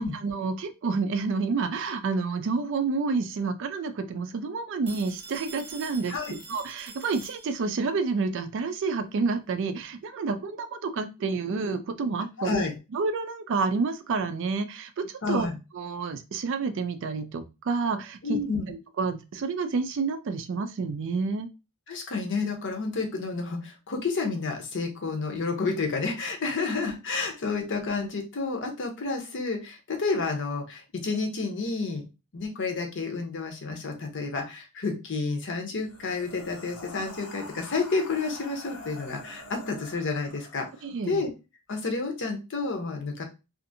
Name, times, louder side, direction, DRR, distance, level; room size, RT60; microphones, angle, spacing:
voice 1, 0.0-6.2 6.5-12.7 12.9-15.5 15.7-18.4 18.7-21.5 40.8-41.3, right 4 dB, 55° right, 10 dB, 0.4 m, -29 dB
Telephone, 4.9-7.9, right 3 dB, 25° right, 0.7 m, -45 dB
voice 2, 12.4-12.8 15.2-15.5 18.2-18.7 21.9-32.1 32.3-40.7 41.1-41.3 41.7-43.2, left 4 dB, 55° left, 3 dB, 0.7 m, -30 dB
sound 1, 35.8-41.0, left 2 dB, 90° left, 0.9 m, -45 dB
2.6 x 2.5 x 2.6 m, 0.27 s
head